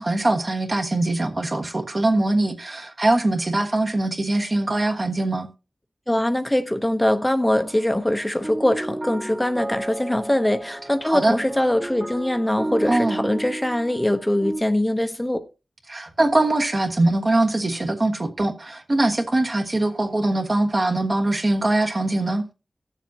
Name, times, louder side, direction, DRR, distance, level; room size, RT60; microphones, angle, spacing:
voice 1, 0.0-5.5 11.0-11.3 12.9-13.3 15.9-22.4, right 2 dB, 45° right, 1.3 m, -22 dB
voice 2, 6.1-15.5, left 1 dB, 10° left, 0.7 m, -22 dB
sound 1, 7.4-14.6, right 1 dB, 25° right, 1.3 m, -33 dB
18.0 x 7.2 x 2.8 m
wide cardioid pair, 75°, 0 cm